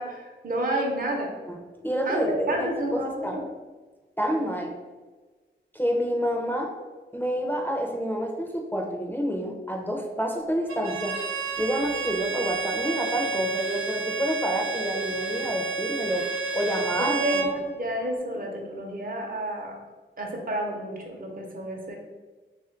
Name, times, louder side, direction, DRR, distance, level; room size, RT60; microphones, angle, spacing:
voice 1, 0.0-1.3 2.1-3.4 17.0-19.8 20.2-22.0, right 1 dB, 45° right, 0 dB, 0.8 m, -30 dB
voice 2, 1.8-3.4 4.2-4.7 5.7-6.7 7.1-11.2 11.6-16.3 16.5-17.5, equal, 10° left, 1 dB, 0.5 m, -28 dB
Bowed string instrument, 10.7-17.5, right 4 dB, 90° right, 0.5 m, -30 dB
3.1 x 2.4 x 4.3 m, 1.3 s
wide cardioid pair, 65°, 20 cm